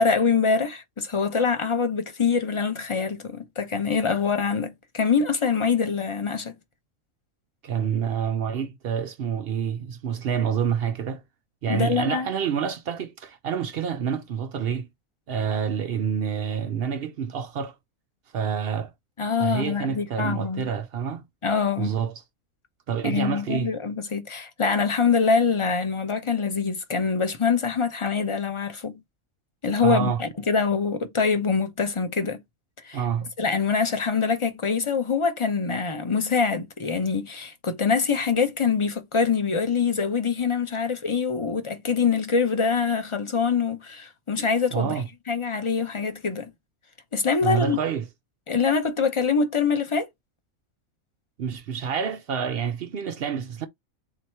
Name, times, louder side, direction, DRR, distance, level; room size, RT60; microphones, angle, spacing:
voice 1, 0.0-6.5 11.7-12.3 19.2-20.7 21.4-21.9 23.0-29.0 29.6-32.4 32.8-33.0 33.4-44.9 45.3-46.5 47.1-47.8 48.5-50.1, left 5 dB, 30° left, 0.7 m, -24 dB
voice 2, 7.6-11.2 11.6-14.9 15.3-17.8 18.3-18.9 19.4-21.2 21.8-22.1 22.9-23.7 29.8-30.2 32.9-33.3 44.7-45.1 47.4-48.0 51.4-53.7, right 7 dB, 65° right, 0.6 m, -27 dB
4.1 x 2.8 x 4.4 m
omnidirectional pair, 1.4 m